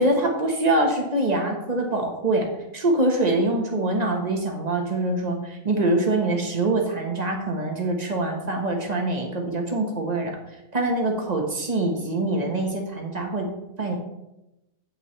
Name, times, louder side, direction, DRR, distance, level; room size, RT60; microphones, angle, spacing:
voice 1, 0.0-10.4 10.7-13.5 13.8-14.0, right 2 dB, 30° right, 2 dB, 1.3 m, -24 dB
8.7 x 8.0 x 3.2 m, 0.93 s
omnidirectional pair, 1.6 m